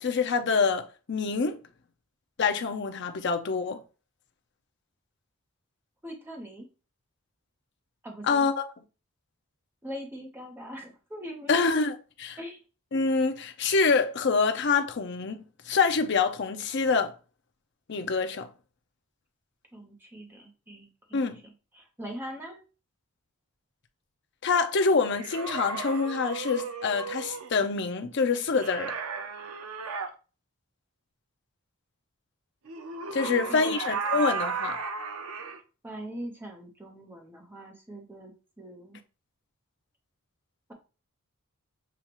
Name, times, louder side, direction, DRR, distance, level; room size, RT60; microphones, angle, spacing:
voice 1, 0.0-1.6 2.4-3.8 8.2-8.7 11.5-12.4 12.9-17.1 17.9-18.5 21.1-21.4 24.4-28.9 33.1-34.8, left 4 dB, 50° left, 0.5 m, -26 dB
voice 2, 6.0-6.7 8.0-8.5 9.8-11.8 12.4-12.6 19.7-21.3 21.7-22.6 33.2-33.8 35.8-39.0, equal, 10° right, 0.9 m, -41 dB
sound 1, 25.1-27.5 28.6-30.1 32.7-35.6, right 5 dB, 80° right, 0.6 m, -34 dB
6.8 x 2.4 x 3.0 m
head